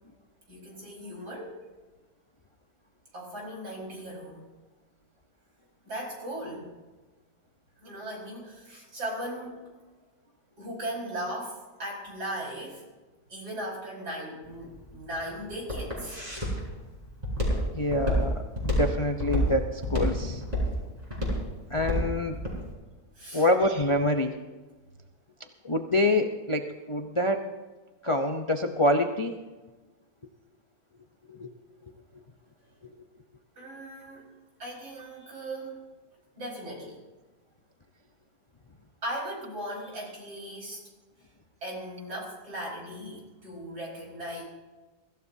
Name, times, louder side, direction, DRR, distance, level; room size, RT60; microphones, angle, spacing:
voice 1, 0.5-1.6 3.1-4.5 5.9-6.7 7.8-9.6 10.6-12.8 13.3-16.2 23.2-23.5 33.6-34.3 34.6-35.8 36.4-37.0 39.0-40.8 41.6-44.4, right 1 dB, 75° right, -3 dB, 5.6 m, -38 dB
Walk footsteps, 14.5-22.6, equal, 25° right, 5.2 m, -29 dB
voice 2, 17.7-20.4 21.7-22.4 23.3-24.4 25.6-27.5 28.0-29.3 31.3-31.5, left 1 dB, 35° left, 4 dB, 0.5 m, -26 dB
24.0 x 15.0 x 2.8 m, 1.3 s
omnidirectional pair, 1.7 m